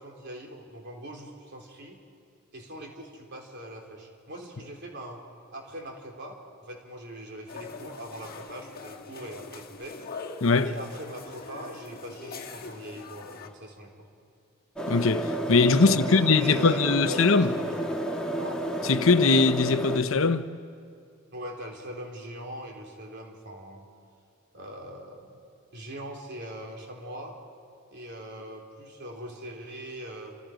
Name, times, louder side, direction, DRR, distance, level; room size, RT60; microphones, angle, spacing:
voice 1, 0.0-2.0 2.5-5.2 5.5-10.0 10.6-13.9 15.8-17.7 18.3-18.6 21.3-23.9 24.5-25.4 25.7-27.4 27.9-30.4, right 1 dB, 50° right, 3.6 m, -41 dB
sound 1, 7.5-13.5, left 4 dB, 45° left, 1.6 m, -42 dB
voice 2, 10.4-10.7 14.9-17.5 18.8-20.5, left 4 dB, 65° left, 0.9 m, -21 dB
sound 2, 14.8-20.0, right 1 dB, 5° left, 1.9 m, -31 dB
29.0 x 26.5 x 5.1 m
head